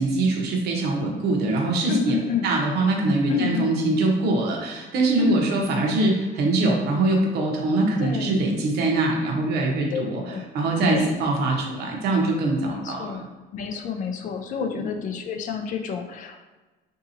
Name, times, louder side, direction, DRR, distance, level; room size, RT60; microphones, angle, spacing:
voice 1, 0.0-2.2 2.4-10.2 10.5-13.3 14.7-14.8, right 2 dB, 65° right, 0 dB, 0.8 m, -23 dB
voice 2, 1.9-2.5 3.3-3.8 5.2-5.5 8.0-8.4 9.9-10.4 10.9-11.2 12.6-13.2 13.5-16.4, left 6 dB, 45° left, 4 dB, 0.4 m, -29 dB
3.8 x 2.7 x 2.7 m, 1.2 s
cardioid pair, 155°, 18 cm